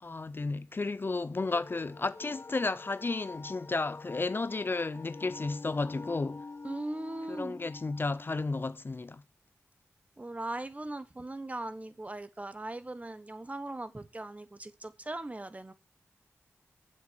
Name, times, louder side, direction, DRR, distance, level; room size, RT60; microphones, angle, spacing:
voice 1, 0.0-6.4 7.3-9.2, left 3 dB, 45° left, 0.5 m, -33 dB
sound 1, 1.4-8.5, left 3 dB, 60° left, 1.5 m, -47 dB
voice 2, 6.6-7.6 10.2-15.7, right 2 dB, 25° right, 1.2 m, -39 dB
8.6 x 7.5 x 6.3 m
wide cardioid pair, 60°, 5 cm